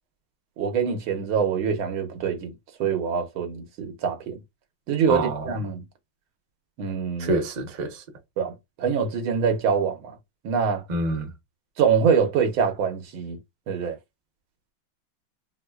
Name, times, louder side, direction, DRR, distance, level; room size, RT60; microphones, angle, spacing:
voice 1, 0.6-2.5 2.8-4.4 4.9-5.8 6.8-7.3 8.4-10.1 10.4-10.8 11.8-13.4 13.7-14.0, right 6 dB, 85° right, 1.8 m, -24 dB
voice 2, 5.1-5.5 7.2-8.0 10.9-11.3, right 2 dB, 40° right, 0.6 m, -26 dB
4.8 x 2.3 x 2.3 m
omnidirectional pair, 2.2 m